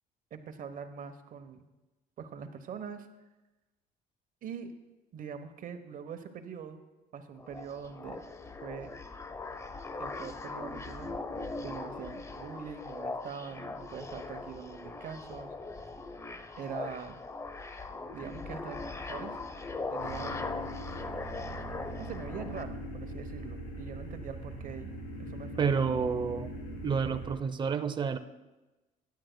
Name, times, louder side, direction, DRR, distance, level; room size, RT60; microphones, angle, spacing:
voice 1, 0.3-1.6 2.2-3.1 4.4-4.7 5.1-6.8 7.1-8.2 8.6-8.9 10.0-11.1 11.6-15.5 16.6-17.2 18.1-19.4 19.9-20.6 22.0-25.9, right 7 dB, 55° right, 8 dB, 0.9 m, -43 dB
sound 1, 7.4-22.6, left 3 dB, 15° left, 0.6 m, -40 dB
sound 2, 20.0-27.3, right 1 dB, 80° left, 3.3 m, -41 dB
voice 2, 25.6-26.5 26.8-28.2, right 6 dB, 25° right, 8 dB, 0.6 m, -29 dB
15.5 x 10.5 x 2.2 m, 1.1 s
cardioid pair, 110°, 17 cm